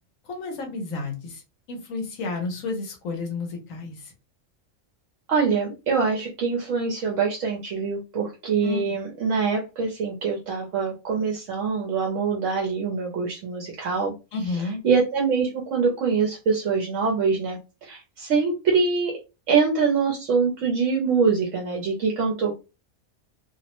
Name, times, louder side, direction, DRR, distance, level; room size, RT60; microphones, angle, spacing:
voice 1, 0.3-1.4 1.7-4.1 8.6-8.9 14.3-14.8, left 3 dB, 80° left, 1 dB, 1.2 m, -31 dB
voice 2, 5.3-14.1 14.6-19.1 19.5-22.5, right 5 dB, 75° right, -1 dB, 1.0 m, -24 dB
2.9 x 2.0 x 2.9 m, 0.29 s
omnidirectional pair, 1.4 m